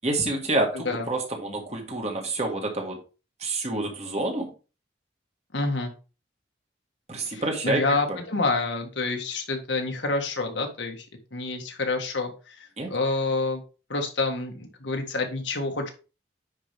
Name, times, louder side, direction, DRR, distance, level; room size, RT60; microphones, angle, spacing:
voice 1, 0.0-3.0 3.4-4.5 7.1-7.8 8.1-8.2 12.8-12.9, right 2 dB, 35° right, 1 dB, 1.8 m, -28 dB
voice 2, 0.7-1.1 5.5-5.9 7.2-11.1 11.3-13.6 13.9-15.9, left 3 dB, 85° left, 3 dB, 1.8 m, -28 dB
9.9 x 4.7 x 3.5 m, 0.33 s
head